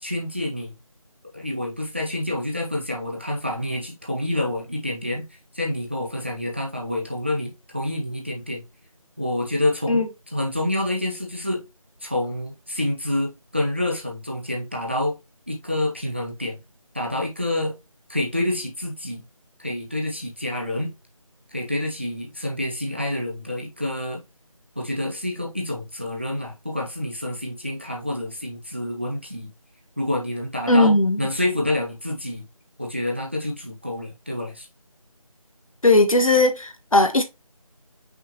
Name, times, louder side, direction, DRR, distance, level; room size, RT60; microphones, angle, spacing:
voice 1, 0.0-0.7 1.3-5.2 5.5-8.6 9.2-10.0 10.3-11.6 12.0-15.2 15.5-16.6 16.9-17.8 18.1-19.2 19.6-20.9 21.5-24.2 24.8-29.5 30.0-32.4 32.8-34.7, left 1 dB, 20° right, 0.6 m, -28 dB
voice 2, 30.7-31.2 35.8-37.2, left 2 dB, 70° left, 1.1 m, -17 dB
5.6 x 3.2 x 2.9 m
figure-of-eight pair, 170°, 18 cm